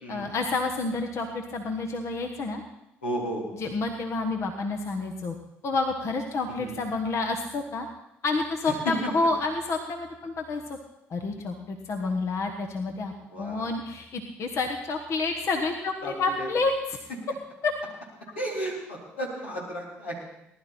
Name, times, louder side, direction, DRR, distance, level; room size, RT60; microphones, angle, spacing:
voice 1, 0.1-2.6 3.5-5.3 5.6-7.9 8.2-10.8 11.1-17.0 17.6-17.7, left 3 dB, 50° left, 4 dB, 1.3 m, -29 dB
voice 2, 3.0-3.4 6.6-6.7 13.3-13.7 16.0-16.1 16.4-16.5 18.4-20.2, right 1 dB, 85° left, -3 dB, 3.6 m, -33 dB
19.5 x 11.5 x 4.4 m, 0.88 s
hypercardioid pair, 55°, 6 cm